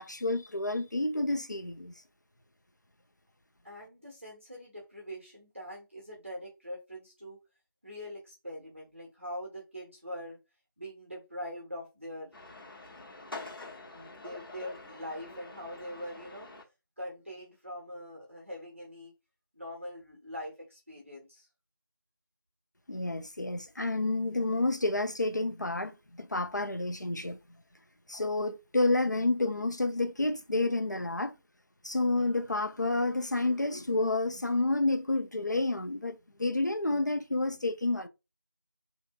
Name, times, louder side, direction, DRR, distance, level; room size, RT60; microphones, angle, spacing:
voice 1, 0.0-1.9 22.9-27.4 28.1-31.3 31.8-38.1, left 2 dB, 55° left, 0.4 m, -29 dB
voice 2, 3.6-7.4 7.8-10.4 10.8-12.3 13.3-16.5 17.0-19.1 19.5-21.5, equal, 35° right, 0.9 m, -43 dB
sound 1, 12.3-16.6, left 2 dB, 80° left, 1.0 m, -46 dB
2.6 x 2.5 x 2.2 m
figure-of-eight pair, 175°, 12 cm